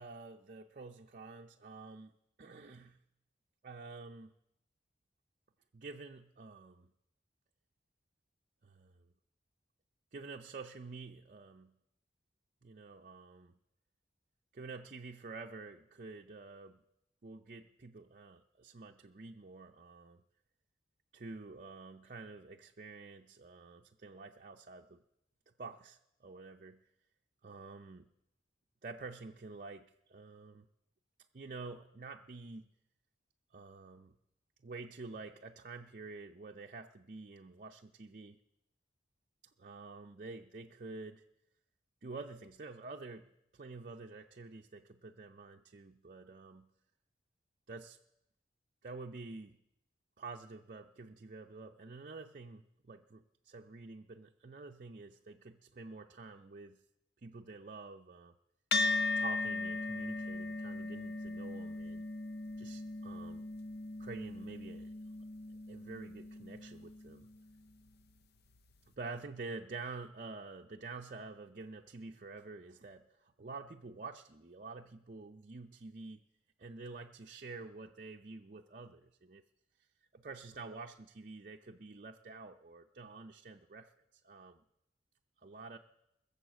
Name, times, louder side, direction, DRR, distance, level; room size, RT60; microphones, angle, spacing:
voice 1, 0.0-3.0 3.6-4.3 5.7-6.9 8.6-8.9 10.1-11.7 12.6-13.5 14.5-16.8 17.2-20.2 21.1-25.0 25.6-26.9 27.4-28.1 28.8-30.7 31.3-32.7 33.5-34.1 34.6-38.4 39.6-41.2 42.0-46.7 47.7-48.0 48.8-49.6 50.2-56.8 57.2-58.3 59.2-62.0 62.6-63.5 64.0-64.9 65.7-67.3 68.9-76.2 76.6-79.4 80.1-83.9 84.2-84.6 85.4-85.8, right 3 dB, 45° right, 3 dB, 0.6 m, -48 dB
sound 1, 58.7-67.4, left 3 dB, 60° left, 0.7 m, -38 dB
21.0 x 7.2 x 7.4 m, 0.86 s
head